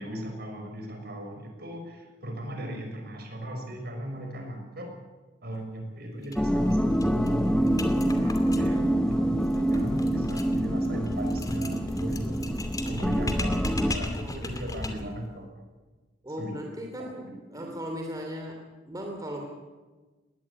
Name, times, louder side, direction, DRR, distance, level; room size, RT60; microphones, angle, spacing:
voice 1, 0.0-4.9 5.4-12.4 12.8-15.6 16.4-16.7 17.0-17.7, right 1 dB, 55° right, 3 dB, 6.1 m, -37 dB
sound 1, 6.2-6.4 6.7-6.8 7.0-15.2, left 1 dB, 20° left, 2.5 m, -36 dB
sound 2, 6.4-13.9, equal, 5° left, 0.6 m, -26 dB
voice 2, 14.2-14.6 16.2-19.5, equal, 20° right, 2 dB, 3.0 m, -37 dB
21.0 x 18.5 x 8.8 m, 1.3 s
head